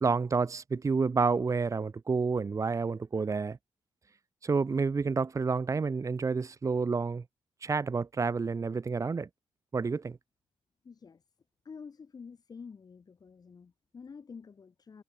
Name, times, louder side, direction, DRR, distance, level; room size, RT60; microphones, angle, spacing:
voice 1, 0.0-3.6 4.4-7.2 7.6-9.3 9.7-10.2, right 4 dB, 30° right, 1.6 m, -29 dB
voice 2, 10.8-11.2 11.7-15.0, left 5 dB, 40° left, 5.5 m, -48 dB
cardioid pair, 95°, 10 cm